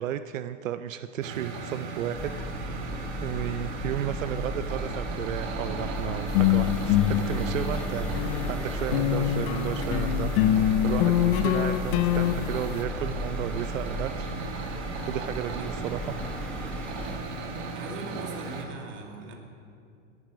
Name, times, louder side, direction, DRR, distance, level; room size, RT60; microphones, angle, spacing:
voice 1, 0.0-2.8 3.2-14.3 14.7-16.2, right 10 dB, 85° right, 11 dB, 0.7 m, -33 dB
sound 1, 1.2-18.6, right 3 dB, 60° right, 2.2 m, -36 dB
sound 2, 2.1-17.2, left 1 dB, 5° left, 1.0 m, -35 dB
sound 3, 6.3-8.5 8.9-12.8, left 12 dB, 50° left, 0.8 m, -25 dB
voice 2, 15.6-15.9 17.7-19.4, right 4 dB, 30° right, 2 dB, 2.5 m, -41 dB
20.0 x 11.0 x 5.2 m, 2.4 s
hypercardioid pair, 130°, 38 cm